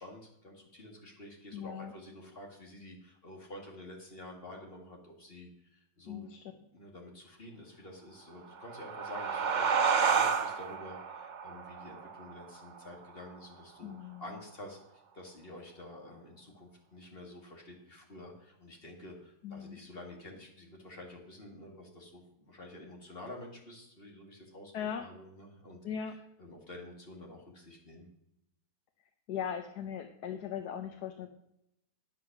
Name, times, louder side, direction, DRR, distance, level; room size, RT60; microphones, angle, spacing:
voice 1, 0.0-25.8 26.4-28.1, left 1 dB, 35° left, 0 dB, 2.3 m, -49 dB
voice 2, 1.5-1.9 6.1-6.4 13.8-14.4 19.4-19.8 24.7-25.0 25.8-26.1 29.3-31.3, left 8 dB, 85° left, 5 dB, 1.4 m, -39 dB
sound 1, 8.4-13.6, right 6 dB, 50° right, 0.5 m, -31 dB
9.7 x 7.5 x 6.0 m, 0.79 s
omnidirectional pair, 1.7 m